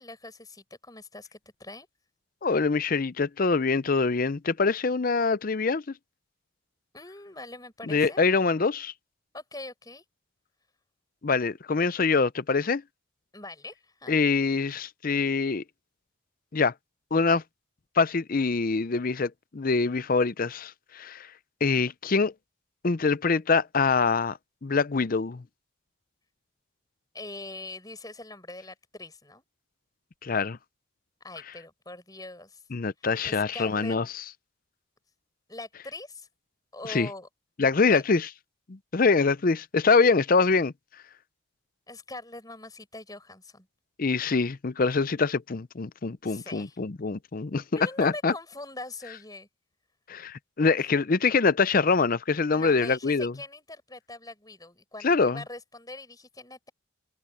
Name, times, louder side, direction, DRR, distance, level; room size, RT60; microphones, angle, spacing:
voice 1, 0.0-1.9 6.9-8.2 9.3-10.0 13.3-14.2 27.1-29.4 31.2-32.6 33.2-34.0 35.5-36.3 36.7-37.3 37.8-38.0 41.9-43.7 46.2-46.8 47.7-49.5 50.8-50.9 52.5-56.7, left 2 dB, 15° left, 6.6 m, -42 dB
voice 2, 2.4-5.8 7.9-8.9 11.2-12.8 14.1-15.6 16.5-16.7 17.1-17.4 18.0-21.3 21.6-22.3 22.8-25.4 30.2-30.6 32.7-34.1 36.9-37.1 37.6-38.3 38.7-40.7 44.0-47.6 48.0-48.3 50.1-53.3 55.0-55.4, left 4 dB, 40° left, 0.5 m, -24 dB
head